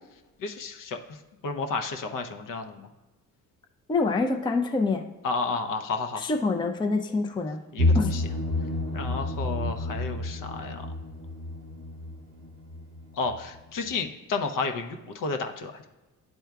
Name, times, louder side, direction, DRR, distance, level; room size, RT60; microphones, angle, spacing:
voice 1, 0.4-1.2 1.4-2.9 5.2-6.3 7.7-8.2 8.9-10.9 13.1-15.9, left 4 dB, 50° left, 5 dB, 0.8 m, -32 dB
voice 2, 3.9-5.0 6.2-7.6 7.9-8.1, left 3 dB, 10° left, 4 dB, 0.5 m, -26 dB
sound 1, 7.8-13.6 13.8-13.9, left 2 dB, 85° right, 0.7 m, -29 dB
10.5 x 4.4 x 2.3 m, 1.1 s
hypercardioid pair, 50°, 41 cm